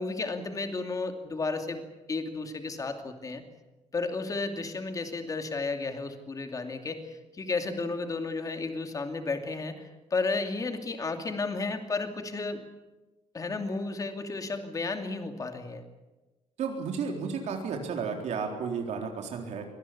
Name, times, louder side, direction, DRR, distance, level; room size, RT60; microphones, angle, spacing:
voice 1, 0.0-1.8 2.1-3.4 3.9-12.6 13.3-15.8, left 3 dB, 30° left, 6 dB, 2.6 m, -33 dB
voice 2, 16.6-19.7, right 5 dB, 75° right, 2 dB, 3.9 m, -33 dB
24.0 x 19.0 x 8.6 m, 1.1 s
cardioid pair, 140°, 12 cm